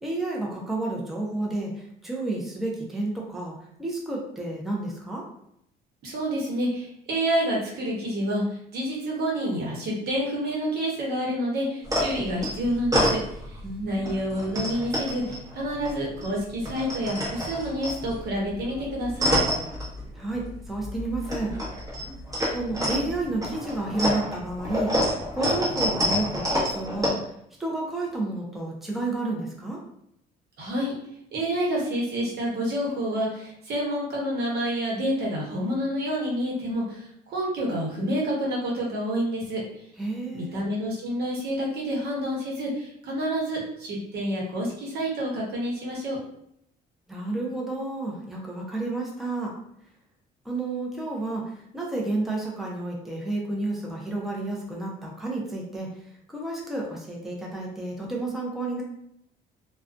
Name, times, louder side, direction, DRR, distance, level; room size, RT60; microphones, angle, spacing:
voice 1, 0.0-5.2 13.6-14.3 20.1-21.5 22.5-27.3 27.6-29.8 40.0-40.6 47.1-49.5 50.4-58.8, right 2 dB, ahead, -2 dB, 0.5 m, -31 dB
voice 2, 6.0-13.2 13.5-19.4 30.6-30.9 31.3-39.6 40.3-46.2, equal, 70° right, -2 dB, 0.9 m, -28 dB
sound 1, 11.8-13.7 14.0-16.3 16.5-20.5 20.8-27.1, equal, 20° right, 1.0 m, -28 dB
2.4 x 2.2 x 2.4 m, 0.74 s
cardioid pair, 110°, 17 cm